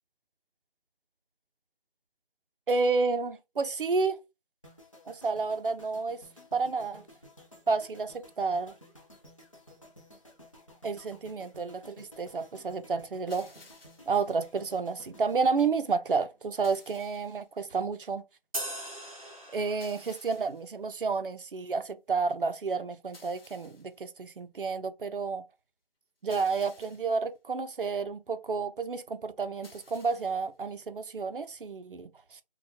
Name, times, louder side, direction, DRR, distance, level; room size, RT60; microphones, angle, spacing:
voice 1, 2.7-4.2 5.1-6.2 6.5-7.0 7.7-8.7 10.8-13.5 14.1-18.2 19.5-25.4 26.2-32.4, right 4 dB, 65° right, 0.5 m, -30 dB
sound 1, 4.6-16.8 17.1-17.4, left 1 dB, 35° left, 0.6 m, -55 dB
sound 2, 13.3-14.2 16.6-17.5 19.8-20.7 23.1-24.0 26.3-27.2 29.6-30.5, left 3 dB, 85° left, 1.0 m, -55 dB
sound 3, 18.5-20.2, right 1 dB, 35° right, 0.8 m, -39 dB
2.9 x 2.2 x 2.7 m
figure-of-eight pair, 180°, 29 cm